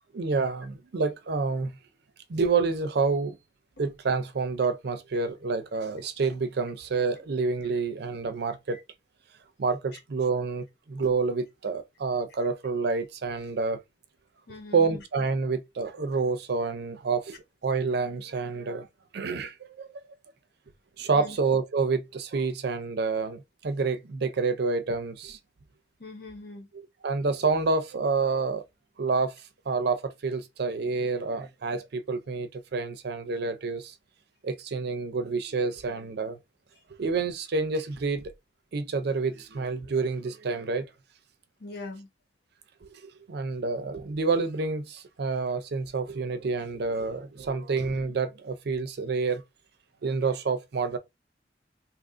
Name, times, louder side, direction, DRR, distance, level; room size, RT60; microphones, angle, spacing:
voice 1, 0.1-1.7 2.3-3.4 3.8-8.8 9.6-13.8 14.7-18.9 19.1-20.0 21.0-25.4 27.0-28.6 29.0-29.3 29.7-33.9 34.4-36.4 37.0-38.2 38.7-40.9 42.8-49.4 50.0-51.0, right 4 dB, 65° right, 0.5 m, -28 dB
voice 2, 14.5-15.0 21.1-21.4 26.0-26.7 41.6-42.1, left 2 dB, 65° left, 1.2 m, -41 dB
2.7 x 2.5 x 3.7 m
head